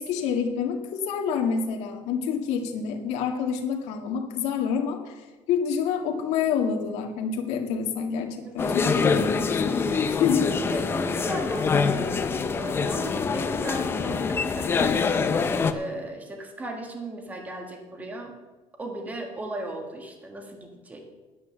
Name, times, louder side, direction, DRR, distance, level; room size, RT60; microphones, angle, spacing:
voice 1, 0.0-5.1 5.5-9.8 10.1-10.5, left 6 dB, 70° left, 1 dB, 2.0 m, -27 dB
voice 2, 8.4-8.8 10.4-15.1 15.7-18.3 18.8-21.0, right 1 dB, 15° right, 2 dB, 1.6 m, -37 dB
sound 1, 8.6-15.7, left 5 dB, 20° left, 0.6 m, -25 dB
11.0 x 9.6 x 7.1 m, 1.2 s
cardioid pair, 180°, 12 cm